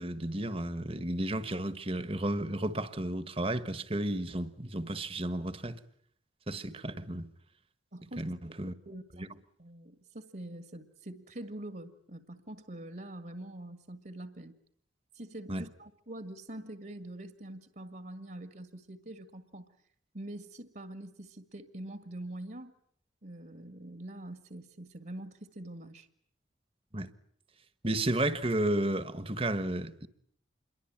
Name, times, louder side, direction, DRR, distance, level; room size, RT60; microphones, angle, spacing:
voice 1, 0.0-5.8 6.5-7.3 8.2-8.7 9.2-9.3 15.5-15.7 26.9-27.1 27.8-30.1, right 1 dB, 30° right, 1.5 m, -32 dB
voice 2, 7.9-8.2 8.9-14.6 15.1-19.8 20.1-22.7 23.2-26.1, right 1 dB, 50° right, 1.9 m, -44 dB
28.0 x 23.0 x 8.8 m
head